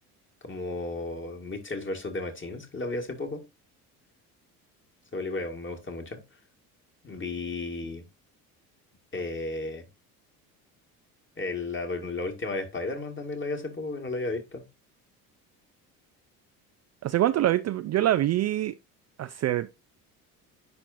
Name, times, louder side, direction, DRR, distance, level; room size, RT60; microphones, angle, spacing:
voice 1, 0.4-3.4 5.1-6.2 7.0-8.0 9.1-9.9 11.4-14.7, left 2 dB, 25° left, 1.9 m, -33 dB
voice 2, 17.0-18.7 19.2-19.9, right 13 dB, 35° right, 0.4 m, -25 dB
10.5 x 4.4 x 2.6 m
hypercardioid pair, 60°, 46 cm